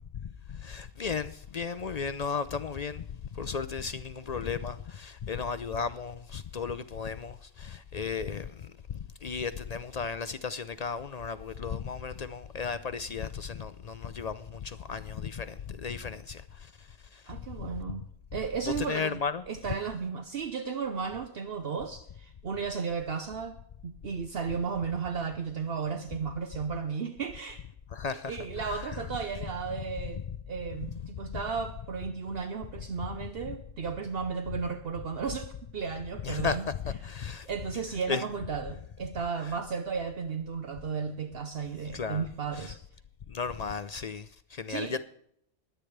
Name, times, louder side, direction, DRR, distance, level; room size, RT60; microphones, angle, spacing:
voice 1, 0.1-17.7 18.8-19.4 27.9-28.9 30.9-31.4 36.2-37.5 38.1-38.3 41.9-42.2 42.5-42.7 43.3-45.0, left 5 dB, 50° left, 0.5 m, -35 dB
voice 2, 17.3-18.0 18.3-23.6 23.8-27.6 28.1-30.2 30.5-36.6 37.5-42.8 44.7-45.0, right 6 dB, 60° right, 1.0 m, -34 dB
22.0 x 9.0 x 3.3 m
omnidirectional pair, 1.1 m